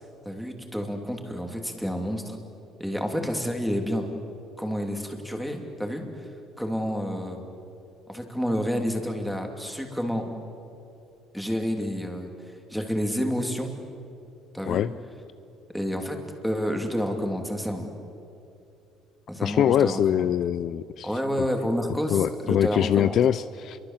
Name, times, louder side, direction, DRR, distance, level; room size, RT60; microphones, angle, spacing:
voice 1, 0.2-2.4 2.8-4.1 4.6-6.3 6.6-7.4 8.1-10.3 11.3-12.3 12.7-13.7 14.5-14.8 15.7-16.2 16.4-17.9 19.3-20.3 21.0-23.1, equal, ahead, 3 dB, 2.9 m, -29 dB
voice 2, 19.4-21.1 21.4-21.5 22.1-23.8, left 10 dB, 50° left, 14 dB, 0.5 m, -23 dB
30.0 x 23.5 x 7.4 m, 2.6 s
cardioid pair, 150°, 0 cm